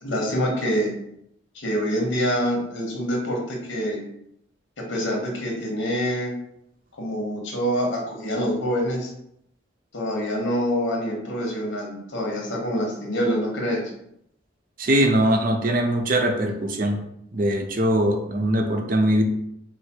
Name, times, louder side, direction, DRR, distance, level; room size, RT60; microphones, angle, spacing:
voice 1, 0.0-0.9 1.5-4.0 4.8-6.3 7.0-9.1 9.9-13.8, equal, 85° left, -1 dB, 1.3 m, -26 dB
voice 2, 14.8-17.0 17.3-19.2, right 1 dB, 50° right, 3 dB, 0.6 m, -21 dB
4.7 x 2.0 x 4.4 m, 0.76 s
head